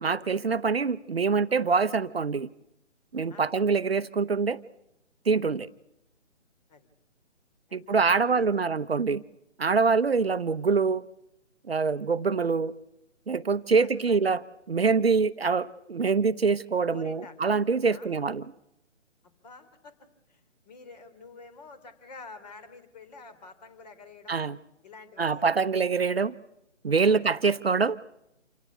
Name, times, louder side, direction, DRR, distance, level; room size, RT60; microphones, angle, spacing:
voice 1, 0.0-2.5 3.1-4.6 5.3-5.7 7.7-9.2 9.6-11.1 11.7-12.7 13.3-14.4 14.7-18.5 24.3-24.6 25.2-26.3 26.8-28.0, right 5 dB, 55° right, 13 dB, 0.9 m, -25 dB
voice 2, 7.7-8.5 13.8-14.4 16.9-17.3 17.9-18.2 19.2-19.9 20.3-24.4 24.8-25.5 27.0-27.2, left 4 dB, 35° left, 11 dB, 3.3 m, -48 dB
28.0 x 18.0 x 8.4 m, 0.84 s
figure-of-eight pair, 140°, 37 cm